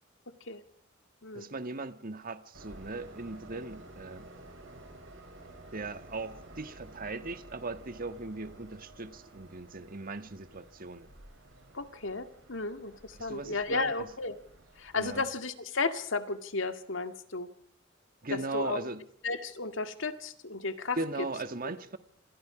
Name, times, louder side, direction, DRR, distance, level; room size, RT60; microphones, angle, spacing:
voice 1, 1.3-4.3 5.7-11.1 13.2-14.1 14.9-15.2 18.2-19.0 21.0-22.0, right 3 dB, 45° right, 1.5 m, -38 dB
Train, 2.5-15.2, right 2 dB, 75° right, 7.8 m, -52 dB
voice 2, 11.7-14.4 14.8-17.5 18.3-18.8 19.2-21.0, left 3 dB, 70° left, 2.0 m, -34 dB
27.5 x 27.0 x 5.0 m
head